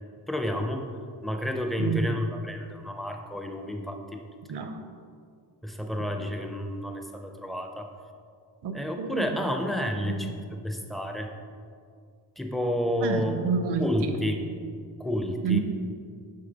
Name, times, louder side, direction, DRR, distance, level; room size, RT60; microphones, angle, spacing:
voice 1, 0.3-0.9 1.2-4.2 5.6-7.9 8.7-11.3 12.4-13.4 13.8-14.4 15.0-15.6, left 1 dB, ahead, 4 dB, 0.4 m, -30 dB
voice 2, 1.8-2.1 4.5-4.9 8.6-9.4 10.0-10.5 13.0-14.5 15.4-15.6, right 5 dB, 75° right, 7 dB, 0.7 m, -30 dB
6.6 x 5.5 x 3.9 m, 2.2 s
wide cardioid pair, 150°, 41 cm